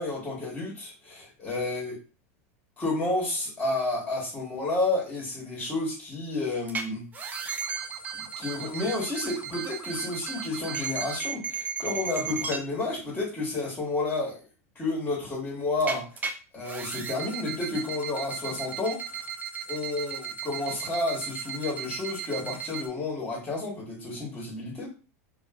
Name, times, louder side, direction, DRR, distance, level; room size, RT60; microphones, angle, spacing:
voice 1, 0.0-2.0 2.8-7.1 8.1-14.4 14.7-16.0 16.5-19.2 19.7-24.9, left 2 dB, 15° left, -4 dB, 1.3 m, -31 dB
sound 1, 6.7-6.8 7.1-12.6 15.8-16.3 16.6-22.9, right 6 dB, 20° right, 0.4 m, -35 dB
3.1 x 2.5 x 2.3 m, 0.34 s
supercardioid pair, 120°, 8 cm